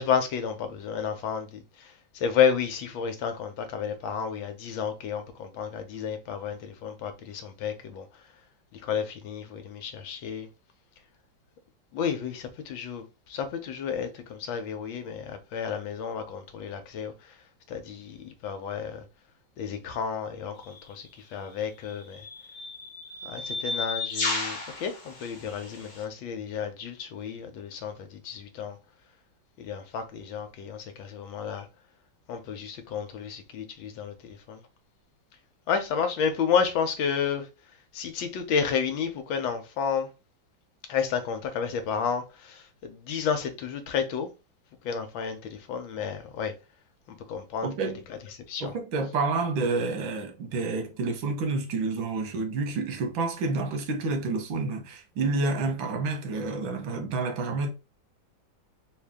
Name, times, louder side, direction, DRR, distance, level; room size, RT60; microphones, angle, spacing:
voice 1, 0.0-1.6 2.1-8.0 8.8-10.5 11.9-13.0 13.3-17.1 17.7-19.0 19.6-21.0 21.3-22.2 23.2-28.8 29.6-31.6 32.3-34.6 35.7-37.4 37.9-40.1 40.9-44.3 44.8-46.5 47.1-47.7 48.5-48.7, left 7 dB, 80° left, 1.6 m, -31 dB
sound 1, 20.6-20.8 21.8-26.0, left 3 dB, 50° left, 0.5 m, -34 dB
voice 2, 47.6-48.0 48.6-57.7, right 3 dB, 90° right, 1.8 m, -29 dB
4.0 x 2.7 x 3.5 m
omnidirectional pair, 2.1 m